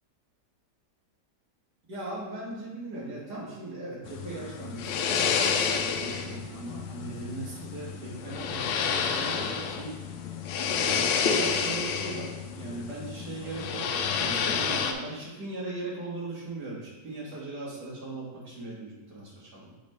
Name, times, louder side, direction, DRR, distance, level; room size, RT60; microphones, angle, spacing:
voice 1, 1.9-10.0 10.7-19.7, right 2 dB, 70° right, -5 dB, 2.1 m, -39 dB
sound 1, 4.0-14.9, left 6 dB, 90° left, 1.2 m, -29 dB
6.9 x 3.3 x 4.3 m, 1.2 s
omnidirectional pair, 1.9 m